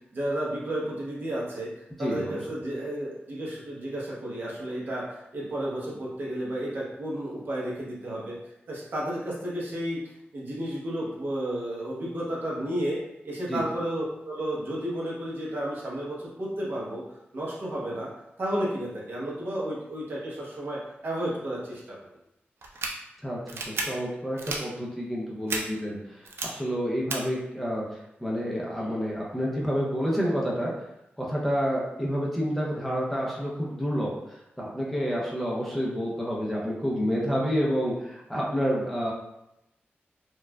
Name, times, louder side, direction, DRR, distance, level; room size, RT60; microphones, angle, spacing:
voice 1, 0.1-1.7 2.0-8.4 8.7-10.0 10.3-13.0 13.2-17.0 17.3-18.1 18.4-22.0, right 1 dB, 55° right, -5 dB, 0.9 m, -32 dB
voice 2, 2.0-2.4 13.5-13.6 23.2-30.7 31.2-39.1, equal, 5° left, -5 dB, 0.5 m, -29 dB
sound 1, 22.6-22.9 23.5-23.8 24.4-24.6 25.5-25.6 26.3-26.5 27.1-27.2, right 4 dB, 85° right, 0.4 m, -31 dB
4.4 x 2.3 x 2.2 m, 0.87 s
wide cardioid pair, 150°, 4 cm